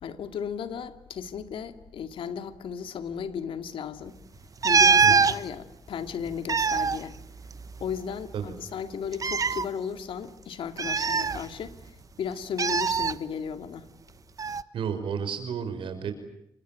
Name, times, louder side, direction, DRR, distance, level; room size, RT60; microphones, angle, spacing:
voice 1, 0.0-4.2 4.6-7.2 7.8-13.9, left 7 dB, 85° left, 2.5 m, -35 dB
sound 1, 4.6-5.4 6.3-8.0 8.2-8.3 9.1-9.6 10.8-11.8 12.6-13.1 14.4-14.6, right 5 dB, 40° right, 1.1 m, -23 dB
voice 2, 14.7-16.1, right 7 dB, 80° right, 5.7 m, -32 dB
28.5 x 25.5 x 7.8 m
cardioid pair, 100°, 9 cm